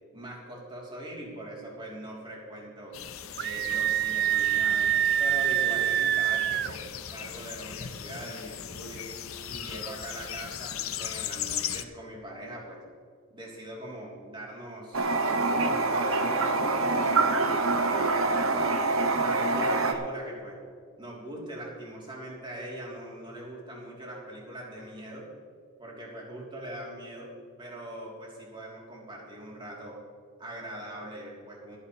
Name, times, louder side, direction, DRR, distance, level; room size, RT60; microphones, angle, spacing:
voice 1, 0.1-3.0 3.4-9.1 9.5-12.8 13.3-18.8 19.2-20.6 21.0-25.3 25.8-27.3 27.6-30.0 30.4-31.8, right 1 dB, 20° right, -3 dB, 3.2 m, -41 dB
sound 1, 2.9-11.8, left 9 dB, 75° left, 0.9 m, -38 dB
Screaming, 3.4-6.7, right 11 dB, 50° right, 0.4 m, -25 dB
Toilet flush, 14.9-19.9, right 3 dB, 75° right, 1.4 m, -25 dB
25.0 x 9.8 x 3.2 m, 2.2 s
head